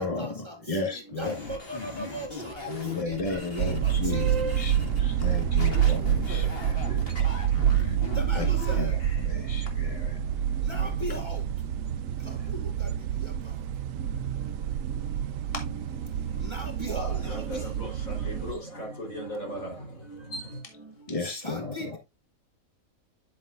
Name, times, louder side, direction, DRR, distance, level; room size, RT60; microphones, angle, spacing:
voice 1, 0.0-0.6 0.8-2.7 3.1-4.2 8.2-9.0 10.7-11.4 12.3-12.9 13.2-13.3 14.4-14.6 15.0-15.1 15.5-15.9 16.4-17.9 19.1-19.7 20.1-20.4 21.2-22.0, right 1 dB, 20° right, 2.1 m, -40 dB
voice 2, 0.7-1.4 2.7-7.0 8.4-8.5 8.8-9.0 9.3-10.2 21.1-22.0, left 3 dB, 25° left, 1.9 m, -33 dB
sound 1, 1.2-9.3, left 3 dB, 45° left, 2.2 m, -39 dB
room tone house plane tram car neighborhood, 3.6-18.5, right 9 dB, 70° right, 1.0 m, -28 dB
voice 3, 16.9-20.6, equal, 75° left, 4.6 m, -37 dB
10.5 x 6.8 x 2.6 m
omnidirectional pair, 1.4 m